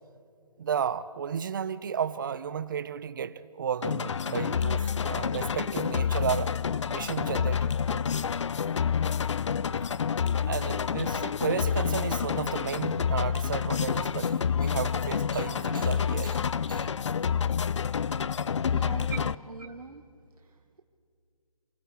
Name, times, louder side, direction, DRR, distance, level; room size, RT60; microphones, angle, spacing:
voice 1, 0.6-6.5 6.9-8.2 10.5-16.4 16.7-16.9 19.1-19.2, right 8 dB, 35° right, 0.6 m, -33 dB
sound 1, 3.8-19.3, left 7 dB, 55° left, 0.5 m, -28 dB
voice 2, 18.7-20.0 20.4-20.8, right 4 dB, 80° right, 1.2 m, -43 dB
28.0 x 24.0 x 4.6 m
figure-of-eight pair, 155°, 19 cm